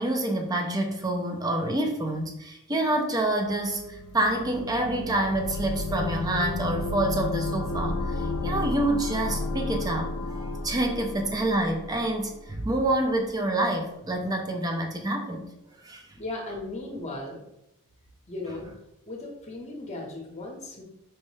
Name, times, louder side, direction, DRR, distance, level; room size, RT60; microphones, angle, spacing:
voice 1, 0.0-15.5 15.8-16.0, right 1 dB, 15° right, 3 dB, 0.4 m, -27 dB
sound 1, 3.5-12.4, left 2 dB, 60° left, 0.4 m, -32 dB
voice 2, 16.2-17.4 18.3-18.7 19.1-20.8, left 2 dB, 30° left, 0 dB, 0.8 m, -36 dB
4.4 x 2.1 x 3.1 m, 0.84 s
head